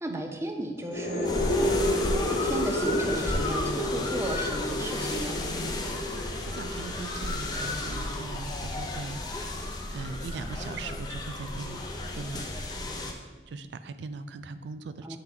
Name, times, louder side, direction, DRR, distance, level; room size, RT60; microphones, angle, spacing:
voice 1, 0.0-2.1 2.4-5.4 15.0-15.2, right 1 dB, 15° right, 4 dB, 0.6 m, -35 dB
sound 1, 0.8-8.3, left 1 dB, 65° left, 1.0 m, -31 dB
sound 2, 1.2-13.1, left 2 dB, 25° left, 0.6 m, -33 dB
voice 2, 6.0-11.8 12.1-12.4 13.0-15.2, right 4 dB, 80° right, 11 dB, 0.4 m, -40 dB
7.5 x 3.8 x 4.4 m, 1.3 s
head